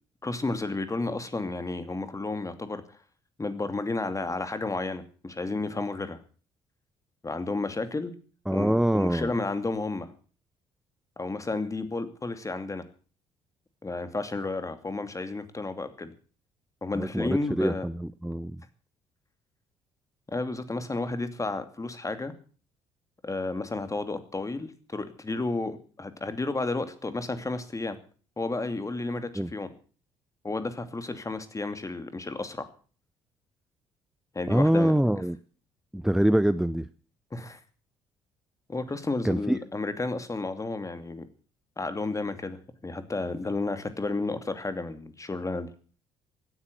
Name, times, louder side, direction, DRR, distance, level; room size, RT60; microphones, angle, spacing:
voice 1, 0.2-2.8 3.4-6.2 7.2-8.1 8.5-10.1 11.2-12.8 13.8-16.1 16.8-17.9 20.3-22.3 23.2-28.0 28.4-29.7 30.4-32.7 34.3-34.9 37.3-37.6 38.7-41.2 41.8-45.7, left 3 dB, 20° left, 10 dB, 2.7 m, -32 dB
voice 2, 8.5-9.3 16.9-18.5 29.4-29.5 34.5-35.4 35.9-36.9 39.2-39.6, right 1 dB, 5° right, 16 dB, 0.7 m, -24 dB
17.0 x 9.9 x 8.1 m, 0.41 s
hypercardioid pair, 50°, 15 cm